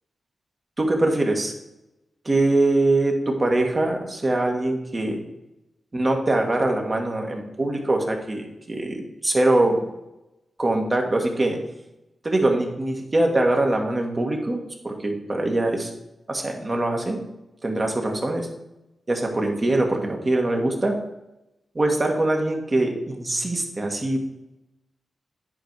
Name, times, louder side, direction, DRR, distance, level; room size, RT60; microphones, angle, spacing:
voice 1, 0.8-1.5 2.2-5.2 5.9-9.9 10.6-11.6 12.2-15.9 16.3-17.3 17.6-18.5 19.1-20.9 21.7-24.2, right 2 dB, 35° right, 2 dB, 1.7 m, -23 dB
10.0 x 4.7 x 4.8 m, 0.95 s
cardioid pair, 70°, 0 cm